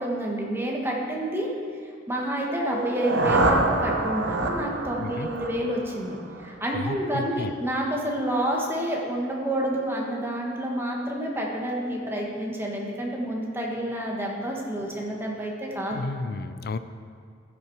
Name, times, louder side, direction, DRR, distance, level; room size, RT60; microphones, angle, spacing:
voice 1, 0.0-1.5 2.1-16.0, right 1 dB, 10° right, -2 dB, 1.3 m, -29 dB
sound 1, 2.6-6.6, right 2 dB, 65° right, 0.8 m, -26 dB
voice 2, 6.7-7.5 15.9-16.8, left 3 dB, 50° left, 12 dB, 0.4 m, -32 dB
14.5 x 6.0 x 4.6 m, 2.2 s
head